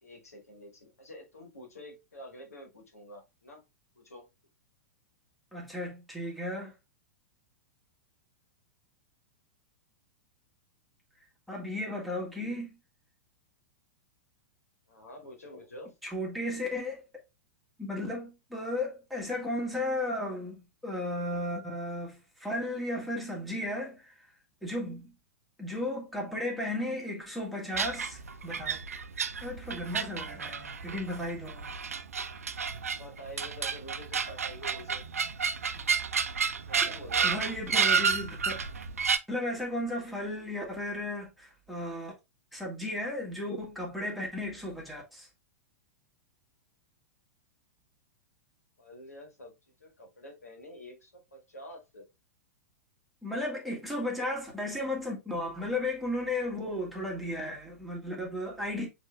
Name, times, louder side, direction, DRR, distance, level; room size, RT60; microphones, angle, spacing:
voice 1, 0.0-3.6 4.0-4.3 14.9-15.9 33.0-35.0 36.7-37.3 48.8-49.5 49.8-52.1, equal, 80° left, 1.8 m, -47 dB
voice 2, 5.5-6.7 11.5-12.8 16.0-17.0 17.8-24.3 24.6-25.1 25.6-28.9 29.4-31.7 37.2-38.6 39.3-42.1 42.5-45.3 53.2-58.9, left 1 dB, ahead, 1.8 m, -35 dB
sound 1, 27.7-39.2, right 6 dB, 75° right, 0.5 m, -31 dB
6.4 x 3.3 x 2.3 m
figure-of-eight pair, 100°, 8 cm